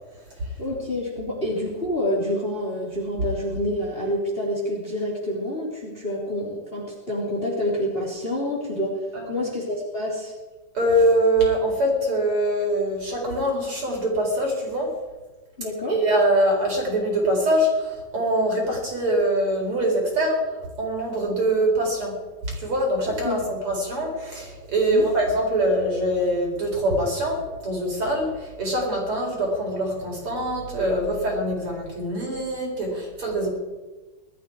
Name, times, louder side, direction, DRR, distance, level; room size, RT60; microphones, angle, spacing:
voice 1, 0.6-8.9 9.3-10.3 15.6-16.0 23.2-23.4 24.9-25.1, left 1 dB, 20° left, -3 dB, 3.2 m, -27 dB
voice 2, 9.1-9.5 10.7-14.9 15.9-22.2 22.4-33.5, right 1 dB, 45° right, -1 dB, 4.9 m, -23 dB
20.0 x 13.0 x 4.7 m, 1.2 s
omnidirectional pair, 3.6 m